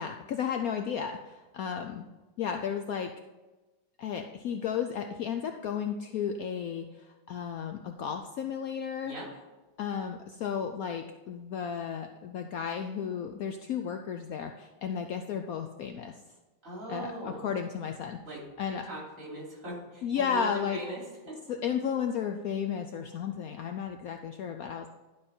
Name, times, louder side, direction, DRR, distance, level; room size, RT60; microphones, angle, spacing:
voice 1, 0.0-2.1 2.4-3.1 4.0-9.1 9.8-16.2 16.9-18.2 18.6-18.8 20.0-20.8 21.5-24.9, left 7 dB, 85° left, 5 dB, 0.8 m, -33 dB
voice 2, 16.6-17.5 18.3-18.4 18.9-21.0 21.3-21.4, right 1 dB, 40° right, -5 dB, 3.7 m, -40 dB
11.5 x 5.3 x 4.3 m, 1.1 s
omnidirectional pair, 2.1 m